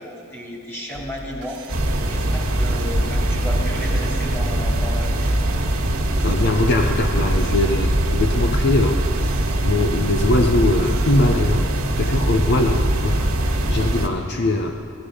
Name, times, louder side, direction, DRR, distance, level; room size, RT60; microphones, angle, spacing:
voice 1, 0.0-1.6 2.1-5.4, left 1 dB, 10° left, -3 dB, 2.6 m, -33 dB
sound 1, 0.9-12.2, right 1 dB, 55° right, 1.3 m, -38 dB
sound 2, 1.7-14.1, right 1 dB, 90° right, 1.6 m, -22 dB
voice 2, 6.2-9.1 9.6-11.7 12.0-13.4 13.7-14.8, left 2 dB, 50° left, 4 dB, 0.6 m, -21 dB
18.0 x 14.0 x 5.0 m, 2.8 s
head